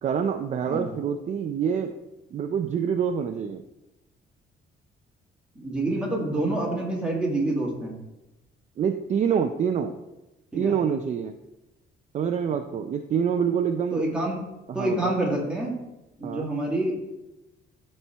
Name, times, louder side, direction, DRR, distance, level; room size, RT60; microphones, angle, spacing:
voice 1, 0.0-1.9 2.3-3.6 8.8-9.9 10.5-11.3 12.1-14.0 14.7-15.1 16.2-16.5, right 7 dB, 40° right, 6 dB, 0.4 m, -26 dB
voice 2, 5.6-8.0 10.5-10.8 13.9-14.4 14.7-15.8 16.2-16.9, right 1 dB, 5° right, -3 dB, 1.9 m, -27 dB
13.0 x 4.3 x 3.4 m, 0.98 s
cardioid pair, 155°, 19 cm